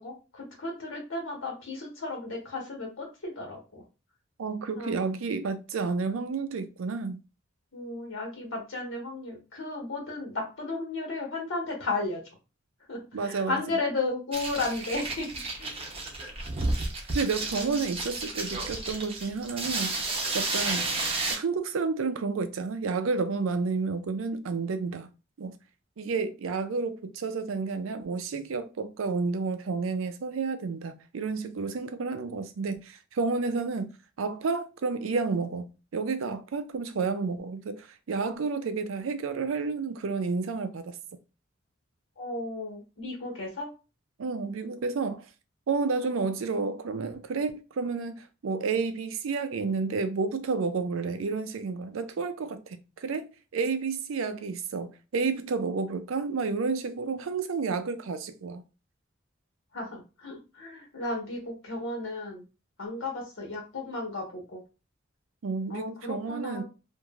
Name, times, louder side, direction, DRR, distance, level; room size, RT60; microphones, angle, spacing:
voice 1, 0.0-3.8 4.8-5.0 7.7-12.2 12.9-15.8 17.5-17.8 42.2-43.7 59.7-62.4 62.8-64.6 65.7-66.6, left 2 dB, 75° left, 1.3 m, -34 dB
voice 2, 4.4-7.2 13.1-13.6 17.1-25.1 25.4-25.6 26.0-33.9 34.2-41.0 44.2-45.3 45.7-58.6 65.4-66.6, right 4 dB, 90° right, 0.4 m, -31 dB
sound 1, 14.3-21.4, right 2 dB, 30° right, 0.7 m, -32 dB
3.0 x 2.6 x 2.4 m
head